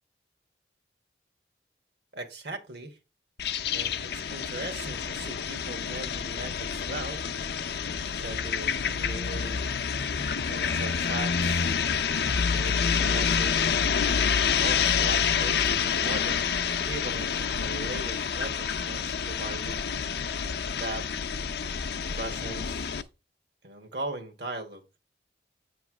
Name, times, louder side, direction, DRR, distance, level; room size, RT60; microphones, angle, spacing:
voice 1, 2.1-3.0 3.7-7.2 8.1-9.6 10.5-11.7 12.5-13.8 14.6-16.4 16.8-19.8 20.8-21.1 22.1-23.0 23.6-24.8, right 2 dB, 65° right, 1.2 m, -39 dB
sound 1, 3.4-23.0, left 6 dB, 60° left, 0.5 m, -28 dB
8.3 x 3.1 x 5.9 m
head